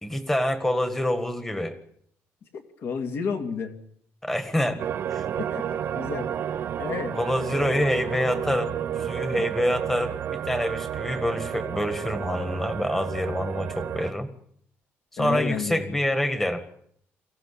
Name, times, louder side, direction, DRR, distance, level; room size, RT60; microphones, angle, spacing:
voice 1, 0.0-1.8 4.2-4.8 5.1-5.2 7.1-8.7 9.0-14.3 15.1-16.7, left 1 dB, 5° left, 10 dB, 1.7 m, -26 dB
voice 2, 2.5-3.7 5.4-6.3 6.8-7.2 9.4-9.5 15.2-16.0, left 5 dB, 55° left, 7 dB, 2.4 m, -31 dB
sound 1, 4.8-14.1, right 9 dB, 50° right, 1.1 m, -31 dB
23.5 x 16.0 x 8.5 m, 0.69 s
cardioid pair, 175°, 5 cm